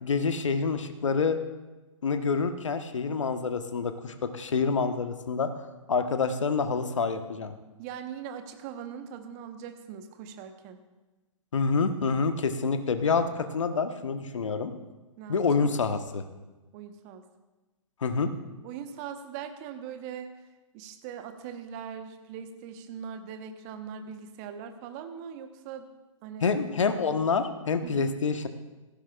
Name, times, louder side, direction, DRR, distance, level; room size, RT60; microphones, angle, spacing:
voice 1, 0.0-1.4 2.0-5.5 5.9-7.5 11.5-13.3 13.5-14.7 15.3-16.2 18.0-18.3 26.4-28.5, left 5 dB, 65° left, 8 dB, 1.2 m, -27 dB
voice 2, 7.8-10.8 15.2-15.7 16.7-17.2 18.6-20.3 20.7-25.9 26.2-26.6 27.8-28.1, right 8 dB, 30° right, 7 dB, 1.1 m, -41 dB
17.5 x 15.5 x 2.4 m, 1.2 s
figure-of-eight pair, 120°, 17 cm